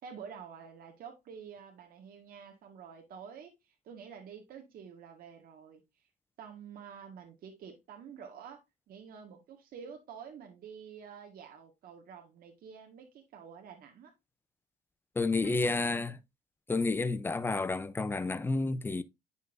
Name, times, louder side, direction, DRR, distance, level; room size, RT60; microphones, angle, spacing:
voice 1, 0.0-3.5 3.8-5.8 6.4-8.6 8.9-14.1 15.3-15.8, right 7 dB, 60° right, 1.6 m, -48 dB
voice 2, 15.2-16.2 16.7-19.0, left 3 dB, 15° left, 0.5 m, -30 dB
9.0 x 5.4 x 2.6 m
cardioid pair, 110°, 17 cm